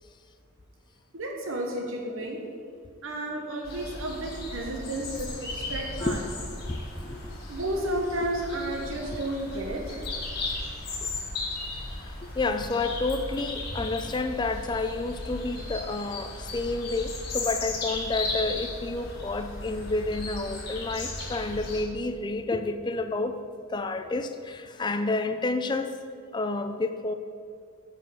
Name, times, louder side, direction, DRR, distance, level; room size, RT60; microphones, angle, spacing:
voice 1, 1.1-2.4 3.0-6.2 7.5-10.0, right 1 dB, 75° right, 0 dB, 1.1 m, -32 dB
sound 1, 3.6-21.8, left 2 dB, 45° left, 1.6 m, -36 dB
voice 2, 6.5-7.3 9.1-9.2 12.2-23.3 23.7-25.9 26.3-27.1, left 3 dB, 20° left, 9 dB, 0.4 m, -30 dB
9.6 x 4.1 x 7.1 m, 2.3 s
head